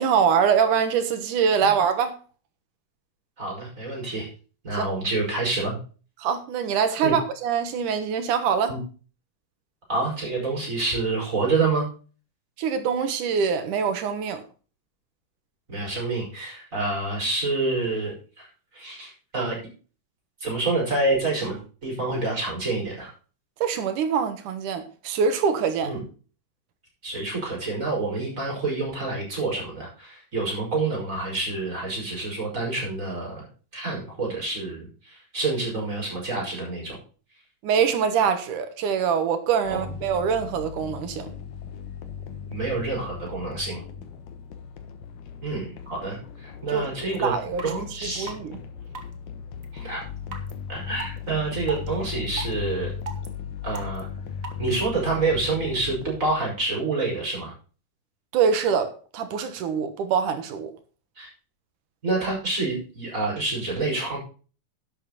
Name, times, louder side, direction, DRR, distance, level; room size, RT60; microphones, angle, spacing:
voice 1, 0.0-2.1 4.8-4.9 6.2-8.7 12.6-14.4 23.6-25.9 37.6-41.3 46.7-46.9 47.2-48.6 58.3-60.7, right 7 dB, 80° right, 2.9 m, -24 dB
voice 2, 3.4-4.3 4.6-5.8 7.0-7.1 8.7-8.8 9.9-11.9 15.7-18.5 18.7-19.6 20.4-23.1 25.8-26.0 27.0-33.5 33.7-37.0 39.7-39.9 42.5-43.8 45.4-47.3 47.6-48.3 49.7-50.0 50.7-52.9 53.6-54.1 54.6-57.5 61.2-61.3 62.0-64.2, right 3 dB, 25° right, 6.3 m, -27 dB
sound 1, 39.6-56.5, left 7 dB, 75° left, 2.6 m, -37 dB
sound 2, 47.1-47.2 47.6-47.7 48.3-48.4 48.9-49.1 49.6-49.7 50.3-50.5 51.0-51.1 51.7-51.9 52.3-52.5 53.1-53.3 53.7-54.0 54.4-54.5, right 5 dB, 40° right, 1.2 m, -35 dB
11.5 x 8.4 x 4.2 m
omnidirectional pair, 3.6 m